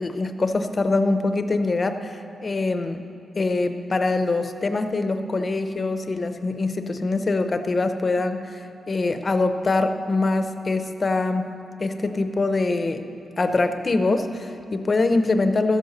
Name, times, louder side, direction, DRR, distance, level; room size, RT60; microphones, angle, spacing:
voice 1, 0.0-3.0 3.4-11.5 11.8-13.1 13.4-15.8, left 3 dB, 30° left, 8 dB, 0.6 m, -24 dB
13.5 x 10.5 x 6.5 m, 2.7 s
wide cardioid pair, 155°, 0 cm